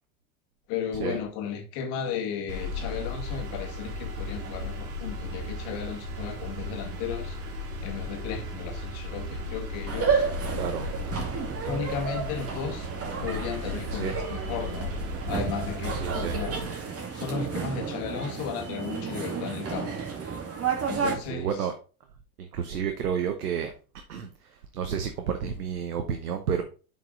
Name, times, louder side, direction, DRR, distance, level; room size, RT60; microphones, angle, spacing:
voice 1, 0.7-7.4 7.8-10.2 11.6-12.9 13.2-14.9 15.3-16.5 17.1-19.9 20.8-21.5, left 7 dB, 60° left, 2.0 m, -34 dB
sound 1, 2.5-16.6, left 1 dB, 70° right, 2.9 m, -35 dB
sound 2, 9.9-21.1, right 6 dB, 30° right, 2.4 m, -32 dB
voice 2, 10.5-11.0 13.9-14.2 15.9-16.8 20.8-21.7 22.4-23.7 24.1-26.6, right 7 dB, 90° right, 1.0 m, -31 dB
7.4 x 5.3 x 3.9 m
hypercardioid pair, 90°, 45 cm